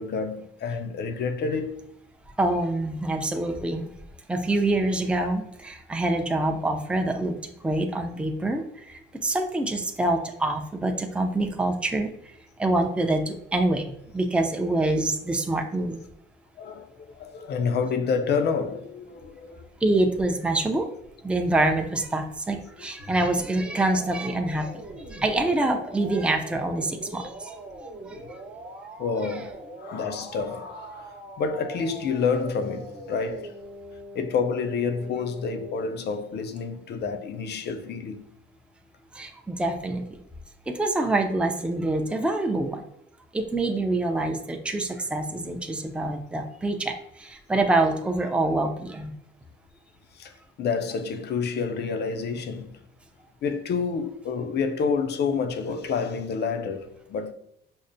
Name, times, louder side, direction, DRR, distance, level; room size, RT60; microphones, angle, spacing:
voice 1, 0.0-1.9 16.6-19.7 22.8-22.9 25.0-25.8 28.1-28.2 29.0-33.5 34.1-38.2 50.1-52.8 53.4-57.3, left 5 dB, 55° left, 0.5 m, -29 dB
voice 2, 2.4-3.9 4.3-12.1 12.6-16.0 19.8-20.9 21.2-24.7 25.1-27.5 27.8-28.2 39.1-40.0 40.7-42.8 43.3-49.1, right 2 dB, 5° right, 0.4 m, -26 dB
sound 1, 23.0-35.8, right 1 dB, 50° right, 0.7 m, -42 dB
5.3 x 2.0 x 2.6 m
cardioid pair, 90°, 20 cm